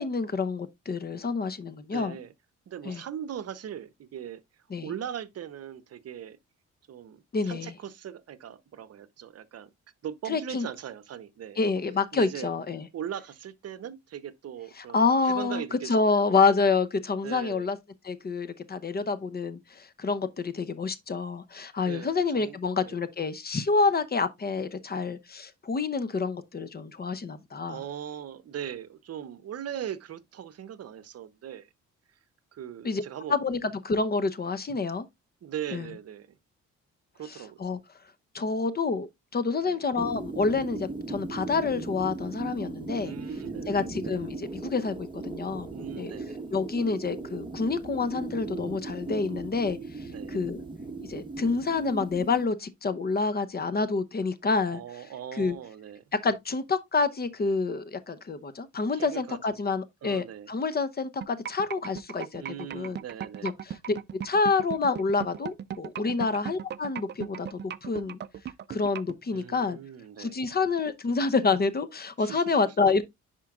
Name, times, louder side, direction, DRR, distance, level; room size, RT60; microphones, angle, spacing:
voice 1, 0.0-2.2 2.8-3.0 4.7-4.9 7.3-7.7 10.3-10.7 11.6-12.8 14.8-17.8 18.0-27.8 32.8-33.0 33.3-35.0 35.7-35.9 37.6-37.8 38.3-43.1 43.7-45.7 46.0-46.1 46.5-49.8 50.3-50.6 51.1-54.8 55.4-55.6 56.2-62.4 62.7-63.0 63.4-63.5 64.2-68.2 68.7-69.8 70.2-73.0, left 4 dB, 30° left, 0.8 m, -28 dB
voice 2, 1.9-2.3 2.7-4.4 4.8-6.4 6.9-9.7 10.0-11.7 12.1-12.5 12.9-16.4 17.2-17.7 21.9-22.6 22.8-23.0 27.7-31.7 32.5-33.4 35.4-36.3 37.1-37.6 39.6-39.8 43.0-43.8 45.7-46.4 50.1-50.4 54.7-56.0 58.9-59.6 60.0-60.5 62.4-63.5 66.0-66.2 69.3-70.4 72.2-72.7, right 9 dB, 55° right, 0.8 m, -39 dB
sound 1, 40.0-52.5, right 3 dB, 15° right, 1.2 m, -38 dB
sound 2, 61.2-69.1, right 9 dB, 35° right, 0.4 m, -36 dB
10.0 x 4.5 x 2.4 m
cardioid pair, 90°, 30 cm